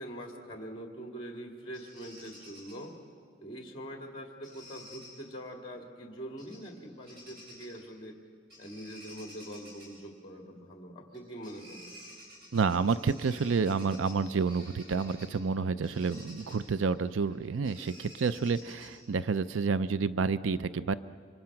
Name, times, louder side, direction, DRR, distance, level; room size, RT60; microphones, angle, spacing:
voice 1, 0.0-2.9 3.4-8.2 8.6-12.0, right 1 dB, 25° left, 3 dB, 2.1 m, -44 dB
Bird vocalization bird call bird song, 1.7-2.7 4.4-5.1 6.4-6.7 7.0-7.8 8.5-9.9 11.1-11.2 11.4-15.4 15.8-19.1, left 1 dB, 60° right, 6.9 m, -51 dB
voice 2, 12.5-20.9, right 5 dB, 80° right, 15 dB, 0.5 m, -29 dB
26.5 x 25.5 x 5.9 m, 2.2 s
head